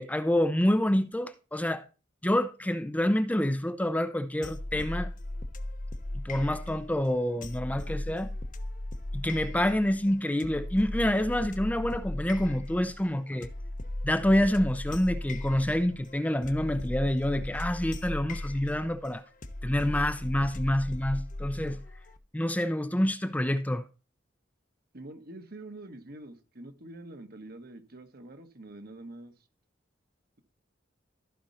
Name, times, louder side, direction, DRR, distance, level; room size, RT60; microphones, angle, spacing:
voice 1, 0.0-1.8 2.2-5.1 6.2-8.3 9.1-13.5 14.0-19.2 19.6-21.8 22.3-23.8, left 1 dB, 10° left, 0.6 m, -27 dB
sound 1, 4.4-22.2, left 1 dB, 45° left, 0.9 m, -37 dB
voice 2, 24.9-29.3, right 2 dB, 55° right, 1.4 m, -45 dB
14.0 x 5.3 x 4.3 m
head